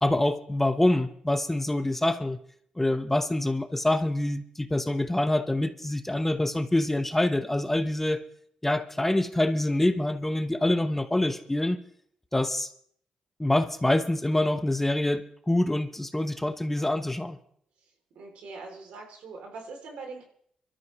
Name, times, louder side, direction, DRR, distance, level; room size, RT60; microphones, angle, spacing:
voice 1, 0.0-2.4 2.8-8.2 8.6-11.8 12.3-12.7 13.4-17.4, left 1 dB, 10° left, 1.0 m, -26 dB
voice 2, 18.1-20.2, right 3 dB, 85° right, 3.0 m, -42 dB
24.5 x 13.0 x 3.1 m
cardioid pair, 75°, 2 cm